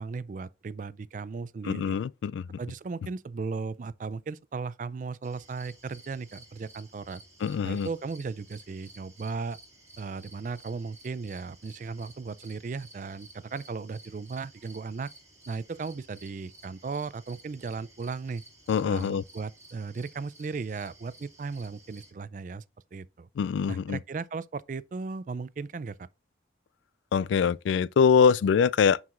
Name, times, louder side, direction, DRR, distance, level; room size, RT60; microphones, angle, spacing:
voice 1, 0.0-2.0 2.6-7.2 7.6-9.6 10.0-15.1 15.5-18.4 18.8-22.6 22.9-23.3 23.7-26.1, right 4 dB, 45° right, 0.3 m, -36 dB
voice 2, 1.6-2.6 7.4-7.9 18.7-19.2 23.4-24.0 27.1-29.0, left 6 dB, 90° left, 0.3 m, -24 dB
sound 1, 5.2-22.1, right 2 dB, 15° right, 2.1 m, -54 dB
9.3 x 4.7 x 2.5 m
head